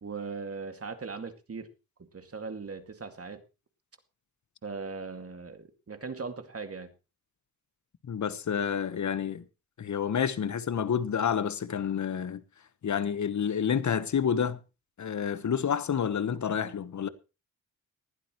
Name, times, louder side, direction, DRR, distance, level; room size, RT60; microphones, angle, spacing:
voice 1, 0.0-1.7 2.1-3.4 4.6-6.9, right 4 dB, 40° right, 2.3 m, -39 dB
voice 2, 8.1-9.4 9.8-12.4 12.8-14.6 15.0-17.1, left 7 dB, 55° left, 1.2 m, -29 dB
19.5 x 11.5 x 3.1 m
cardioid pair, 60°, 35 cm